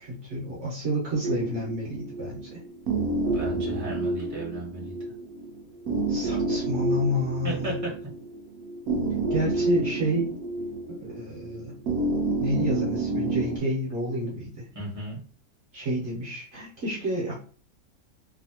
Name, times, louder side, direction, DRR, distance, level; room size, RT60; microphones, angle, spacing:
voice 1, 0.1-2.4 6.1-7.7 9.3-10.3 10.9-11.7 12.4-14.7 15.7-17.3, equal, 55° right, -5 dB, 1.2 m, -29 dB
sound 1, 1.2-13.6, right 2 dB, 70° right, 1.0 m, -29 dB
voice 2, 3.3-4.9 7.4-7.9 14.7-15.2, right 2 dB, 10° right, -5 dB, 1.2 m, -34 dB
2.9 x 2.8 x 2.8 m, 0.41 s
omnidirectional pair, 1.6 m